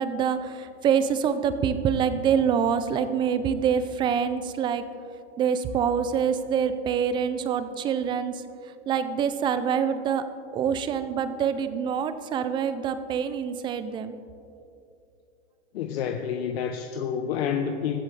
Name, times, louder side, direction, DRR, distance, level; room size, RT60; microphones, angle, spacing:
voice 1, 0.0-4.8 5.4-8.3 8.9-10.2 10.5-14.2, right 7 dB, 15° right, 12 dB, 0.3 m, -25 dB
voice 2, 15.7-18.0, left 7 dB, 65° left, 5 dB, 0.9 m, -29 dB
21.5 x 7.5 x 3.3 m, 2.6 s
hypercardioid pair, 130°, 34 cm